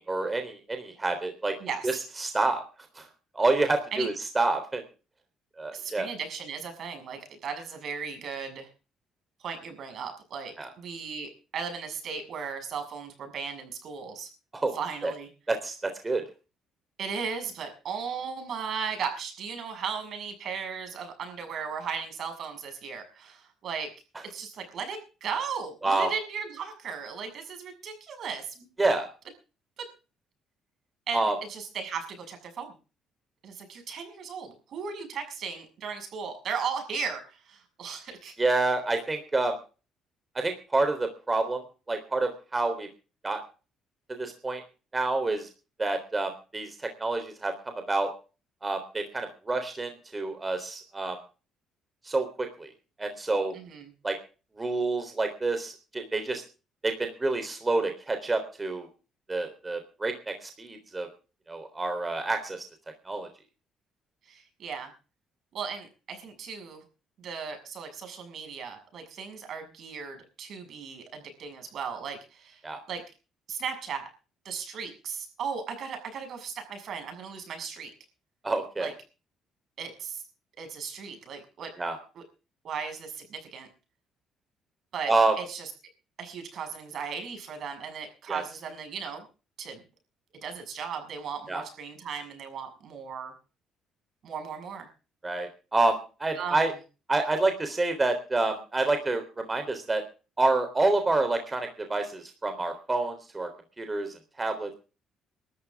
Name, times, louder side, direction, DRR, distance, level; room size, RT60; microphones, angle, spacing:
voice 1, 0.1-1.5 1.8-2.6 3.0-3.1 3.4-4.8 5.6-6.1 10.6-10.7 14.6-14.8 15.0-15.1 15.5-16.2 25.8-26.1 28.8-29.0 31.1-31.4 38.4-39.6 40.4-41.6 41.9-42.9 43.2-43.4 44.1-44.6 44.9-45.5 45.8-46.7 47.0-47.5 47.9-48.1 48.6-51.2 52.1-52.7 53.0-53.5 54.0-54.2 54.6-56.4 56.8-58.9 59.3-61.1 61.5-62.6 63.1-63.3 72.6-72.8 78.4-78.9 81.8-82.0 85.1-85.3 88.3-88.4 91.5-91.6 95.2-96.7 97.1-100.0 100.4-103.5 103.8-104.7, right 2 dB, 20° right, 6 dB, 3.6 m, -28 dB
voice 2, 1.6-2.0 3.9-4.1 5.7-8.7 9.4-14.3 14.7-15.3 17.0-23.9 24.2-28.7 29.8-29.9 31.1-32.7 33.4-38.3 53.5-53.9 64.3-64.9 65.5-66.8 67.2-72.6 72.9-73.0 73.5-74.1 74.4-77.9 78.8-78.9 79.8-80.2 80.6-81.7 82.1-82.2 82.6-83.7 84.9-85.7 86.2-89.3 89.6-89.8 90.4-93.3 94.2-94.9 96.4-96.6, right 6 dB, 60° right, 6 dB, 6.7 m, -36 dB
22.5 x 13.5 x 3.6 m, 0.35 s
cardioid pair, 90°, 0 cm